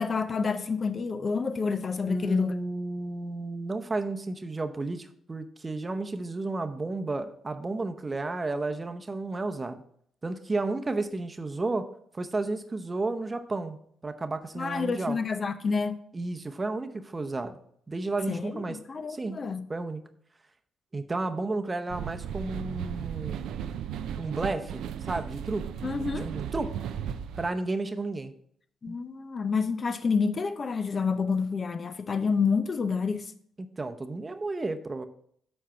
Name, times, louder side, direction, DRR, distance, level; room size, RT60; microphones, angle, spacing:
voice 1, 0.0-2.5 14.6-16.0 18.3-19.6 25.8-26.3 28.8-33.3, left 5 dB, 45° left, 0.6 m, -28 dB
voice 2, 2.0-9.8 10.2-11.9 12.1-13.8 14.0-15.2 16.1-17.6 17.9-18.8 19.1-19.4 19.7-20.1 20.9-23.4 24.2-25.6 26.2-26.8 27.4-28.3 28.9-29.0 33.6-35.1, right 2 dB, 30° right, 0.8 m, -32 dB
sound 1, 21.9-27.5, right 9 dB, 75° right, 0.4 m, -35 dB
7.5 x 4.5 x 5.9 m
hypercardioid pair, 45°, 0 cm